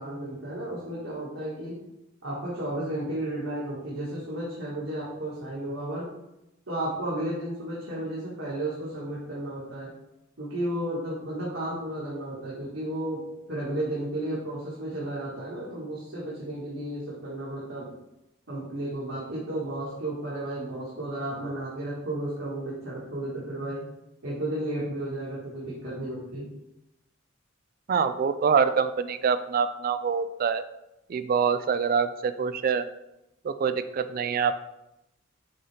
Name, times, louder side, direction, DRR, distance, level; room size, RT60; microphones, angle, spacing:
voice 1, 0.0-1.8 2.2-6.1 6.7-9.9 10.4-17.9 18.5-23.8 24.2-26.5, right 1 dB, 75° right, -8 dB, 1.8 m, -33 dB
voice 2, 27.9-30.6 31.1-32.8 33.4-34.5, right 6 dB, 45° right, 12 dB, 0.3 m, -25 dB
7.5 x 4.2 x 3.4 m, 0.89 s
head